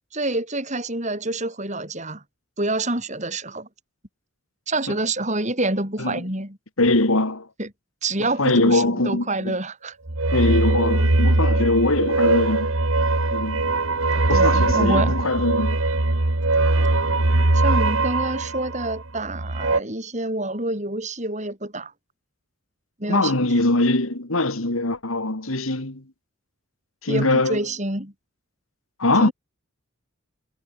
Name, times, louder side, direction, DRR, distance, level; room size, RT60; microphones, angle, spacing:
voice 1, 0.1-2.2 2.6-3.7 4.7-6.6 7.6-7.7 8.0-10.0 14.3-15.2 17.5-21.9 23.0-23.4 27.1-28.1 29.2-29.3, right 2 dB, 35° right, 7.2 m, -27 dB
voice 2, 6.8-7.5 8.4-9.6 10.3-12.7 13.2-13.7 14.3-15.8 23.1-26.0 27.0-27.6 29.0-29.3, left 2 dB, 85° left, 3.1 m, -22 dB
sound 1, 10.1-19.8, right 2 dB, 80° right, 1.9 m, -21 dB
head